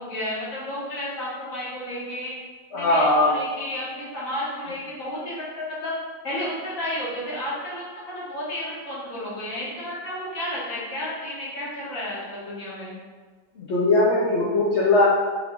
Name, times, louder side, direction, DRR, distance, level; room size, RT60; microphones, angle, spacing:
voice 1, 0.0-2.3 2.7-5.9 6.2-12.9, left 1 dB, 55° left, -7 dB, 1.4 m, -32 dB
voice 2, 2.7-3.3 13.6-15.1, left 2 dB, 80° left, -6 dB, 0.6 m, -20 dB
3.3 x 3.1 x 3.6 m, 1.5 s
omnidirectional pair, 1.9 m